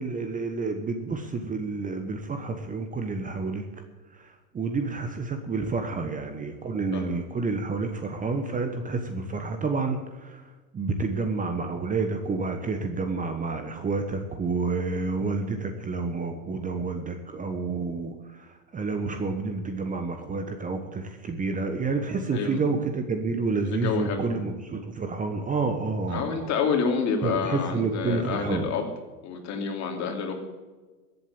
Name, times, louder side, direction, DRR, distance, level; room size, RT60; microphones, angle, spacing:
voice 1, 0.0-3.6 4.5-10.4 10.7-18.1 18.7-26.5 27.2-28.7, right 4 dB, 15° right, 6 dB, 1.2 m, -29 dB
voice 2, 22.3-22.8 23.7-24.4 26.1-28.9 29.2-30.3, left 5 dB, 35° left, 4 dB, 3.1 m, -28 dB
15.0 x 8.1 x 8.7 m, 1.3 s
hypercardioid pair, 115°, 47 cm